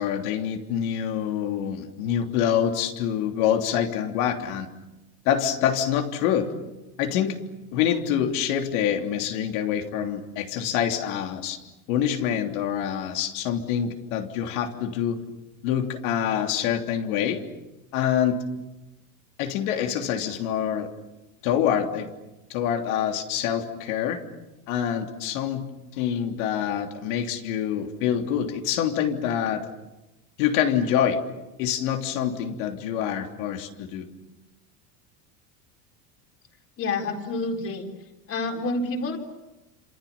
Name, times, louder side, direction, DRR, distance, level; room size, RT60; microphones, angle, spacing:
voice 1, 0.0-4.7 5.2-6.5 7.0-7.4 7.7-11.6 11.9-15.2 15.6-17.4 17.9-18.4 19.4-20.9 21.4-22.1 22.5-24.2 24.7-25.7 26.0-29.7 30.4-31.2 31.6-34.1, left 9 dB, 70° left, 4 dB, 3.4 m, -26 dB
voice 2, 36.8-37.9 38.3-39.2, left 3 dB, 30° left, 4 dB, 4.2 m, -28 dB
28.5 x 27.0 x 7.3 m, 1.0 s
supercardioid pair, 155°, 45 cm